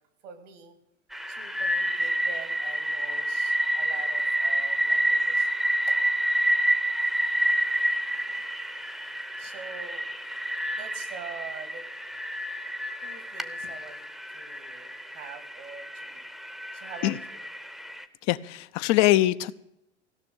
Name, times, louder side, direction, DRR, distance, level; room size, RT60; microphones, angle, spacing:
voice 1, 0.2-0.8 1.3-6.0 8.1-8.5 9.4-10.2 10.7-11.9 13.0-14.0 14.3-16.2 16.7-17.4, right 6 dB, 75° right, 9 dB, 2.8 m, -45 dB
sound 1, 1.1-18.0, right 1 dB, ahead, 0.8 m, -29 dB
voice 2, 18.3-19.5, left 15 dB, 50° left, 13 dB, 0.6 m, -22 dB
16.5 x 6.1 x 9.7 m, 0.82 s
hypercardioid pair, 105°, 36 cm